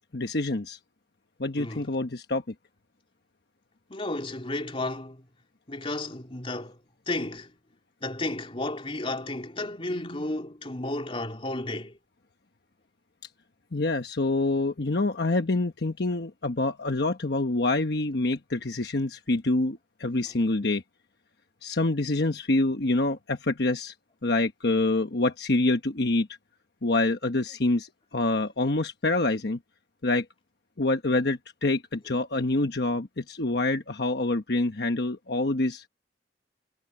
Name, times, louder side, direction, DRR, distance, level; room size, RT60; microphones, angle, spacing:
voice 1, 0.1-0.8 1.4-2.4 13.7-20.8 21.6-23.9 24.2-26.3 26.8-29.6 30.0-30.2 30.8-35.8, left 2 dB, 65° left, 1.2 m, -26 dB
voice 2, 1.6-1.9 3.9-5.3 5.7-6.8 7.1-7.5 8.0-12.0, left 2 dB, 30° left, 3.2 m, -33 dB
head